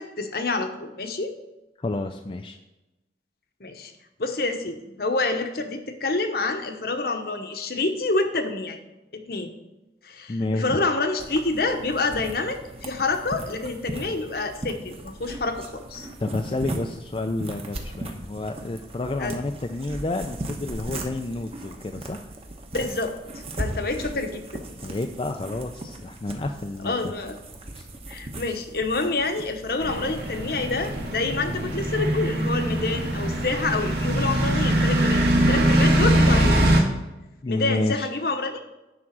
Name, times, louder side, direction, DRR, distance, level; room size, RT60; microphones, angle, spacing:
voice 1, 0.0-1.3 3.6-3.9 4.2-8.8 9.1-9.5 10.0-16.1 19.2-19.4 22.7-23.1 23.6-24.6 26.8-27.4 28.1-36.8 37.5-38.6, left 3 dB, 55° left, 6 dB, 1.0 m, -27 dB
voice 2, 1.8-2.6 10.3-10.8 16.2-22.2 24.8-27.1 27.8-27.9 37.4-38.1, left 2 dB, 30° left, 4 dB, 0.4 m, -30 dB
sound 1, 11.2-31.1, right 1 dB, 35° right, 1.0 m, -38 dB
sound 2, 29.8-36.8, right 1 dB, 60° right, 1.9 m, -22 dB
10.5 x 3.7 x 7.4 m, 1.0 s
head